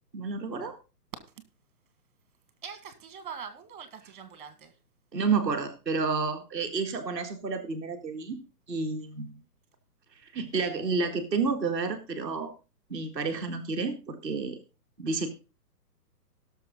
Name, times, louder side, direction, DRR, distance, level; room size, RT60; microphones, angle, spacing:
voice 1, 0.1-0.8 5.1-8.4 8.7-9.3 10.3-12.5 12.9-14.6 15.0-15.3, right 4 dB, ahead, -10 dB, 0.8 m, -30 dB
voice 2, 2.6-4.7, right 6 dB, 30° right, 10 dB, 1.9 m, -43 dB
18.0 x 6.7 x 3.8 m, 0.30 s
hypercardioid pair, 170°, 48 cm